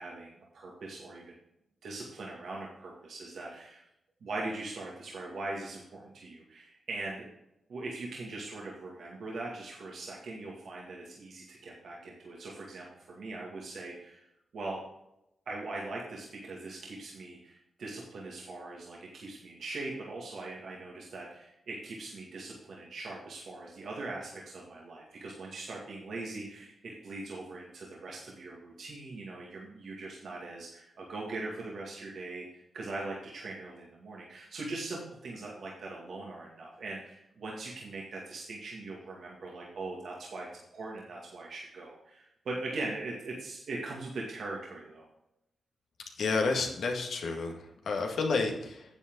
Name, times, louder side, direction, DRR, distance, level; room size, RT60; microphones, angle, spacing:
voice 1, 0.0-1.3 1.8-3.8 4.2-7.3 7.7-14.2 14.5-14.8 15.5-45.1, right 2 dB, 75° right, -3 dB, 2.2 m, -41 dB
voice 2, 46.2-48.8, left 4 dB, 80° left, 2 dB, 2.0 m, -30 dB
9.7 x 7.7 x 3.9 m, 0.83 s
cardioid pair, 55°, 0 cm